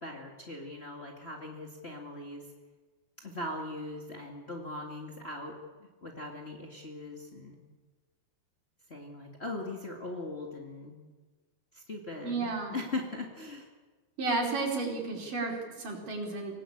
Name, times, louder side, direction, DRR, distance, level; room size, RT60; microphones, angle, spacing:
voice 1, 0.0-2.5 3.2-5.6 6.0-7.6 8.9-11.0 11.7-13.7, left 2 dB, 55° left, -1 dB, 0.7 m, -40 dB
voice 2, 12.2-12.8 14.2-16.5, right 3 dB, 50° right, 0 dB, 5.3 m, -32 dB
24.5 x 19.0 x 8.7 m, 1.3 s
omnidirectional pair, 5.2 m